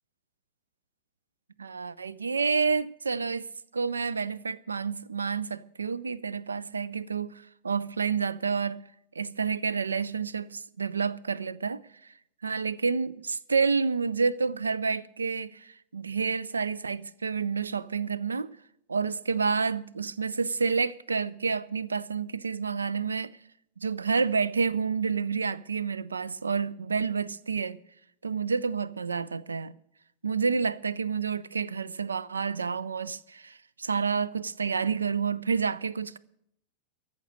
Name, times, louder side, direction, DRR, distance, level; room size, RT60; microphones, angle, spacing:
voice 1, 1.6-3.5 3.7-8.8 9.2-12.1 12.4-18.5 18.9-23.4 23.8-27.8 28.2-29.7 30.2-36.2, right 5 dB, 75° right, 0.4 m, -29 dB
14.0 x 6.5 x 9.7 m
figure-of-eight pair, 90°, 0 cm